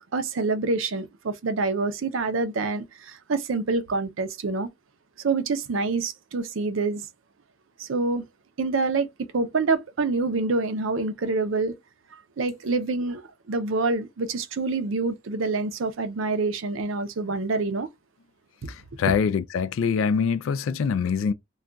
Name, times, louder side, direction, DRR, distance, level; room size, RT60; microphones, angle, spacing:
voice 1, 0.0-4.7 5.2-7.1 7.8-8.2 8.6-9.1 9.3-11.7 12.1-13.2 13.5-17.9, right 3 dB, 85° right, 0.5 m, -26 dB
voice 2, 18.7-21.3, left 6 dB, 90° left, 0.3 m, -24 dB
2.3 x 2.2 x 3.8 m
head